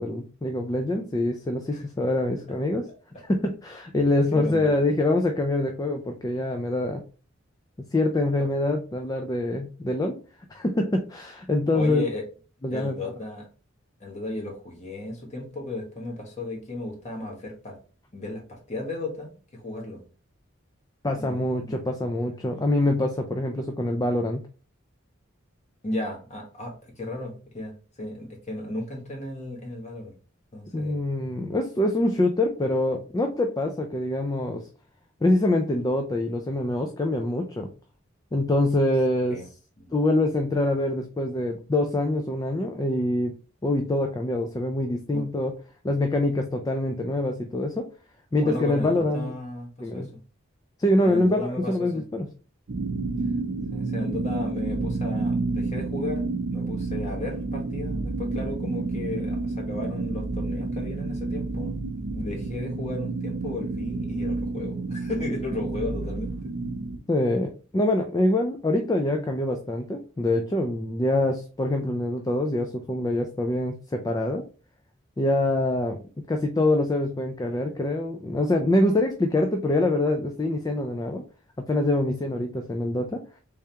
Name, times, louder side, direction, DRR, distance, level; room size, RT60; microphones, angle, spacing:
voice 1, 0.0-2.9 3.3-7.0 7.9-10.2 10.5-12.1 12.6-13.0 21.0-24.4 30.7-34.6 35.2-37.7 38.3-39.4 39.9-43.3 43.6-45.5 45.8-47.9 48.3-49.3 49.8-50.1 50.8-52.3 67.1-74.4 75.2-76.0 76.3-81.2 81.6-83.2, left 1 dB, 20° left, 4 dB, 0.3 m, -25 dB
voice 2, 4.3-4.8 11.7-12.2 12.7-13.5 14.0-17.8 18.1-20.0 21.2-21.8 25.8-30.1 30.5-31.1 39.3-39.5 39.8-40.0 45.1-45.2 48.4-50.2 51.0-52.0 53.7-61.8 62.1-66.3, left 2 dB, 35° left, 0 dB, 1.3 m, -35 dB
sound 1, 52.7-67.0, right 3 dB, 65° right, 0.6 m, -30 dB
3.5 x 3.4 x 2.8 m, 0.37 s
head